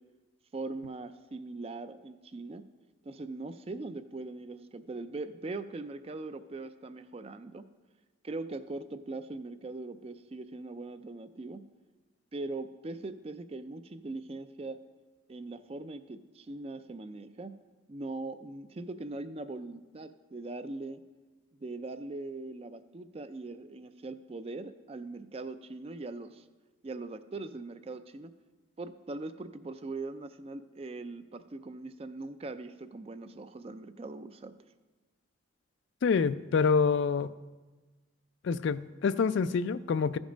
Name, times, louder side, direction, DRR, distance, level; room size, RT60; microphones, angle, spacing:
voice 1, 0.5-2.6 3.0-7.6 8.2-11.6 12.3-14.8 15.3-17.5 17.9-21.0 21.5-26.4 26.8-28.3 28.8-34.5, right 2 dB, 30° right, 11 dB, 0.4 m, -41 dB
voice 2, 36.0-37.3 38.4-40.2, left 5 dB, 60° left, 15 dB, 0.3 m, -27 dB
14.0 x 5.3 x 5.0 m, 1.2 s
head